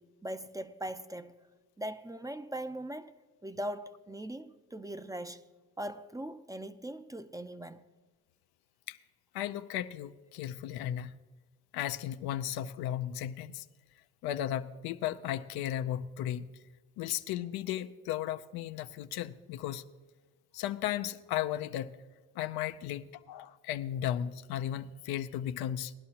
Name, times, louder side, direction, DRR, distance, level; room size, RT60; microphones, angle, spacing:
voice 1, 0.0-1.3 1.8-3.1 3.4-5.4 5.8-7.8, right 1 dB, 10° right, 0.5 m, -40 dB
voice 2, 9.3-11.2 11.7-13.6 14.2-16.5 17.0-19.8 20.5-21.9 22.4-25.9, left 11 dB, 80° left, 0.6 m, -35 dB
18.5 x 11.0 x 2.9 m
supercardioid pair, 80°, 37 cm